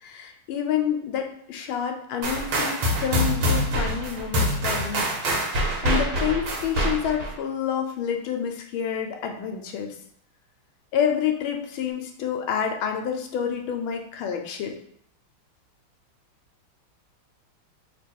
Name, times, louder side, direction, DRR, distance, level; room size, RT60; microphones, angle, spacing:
voice 1, 0.0-5.1 5.8-9.9 10.9-14.8, left 8 dB, 85° left, 3 dB, 1.4 m, -28 dB
sound 1, 2.2-7.3, equal, 80° right, 1.8 m, -25 dB
3.3 x 3.0 x 4.3 m, 0.68 s
omnidirectional pair, 2.2 m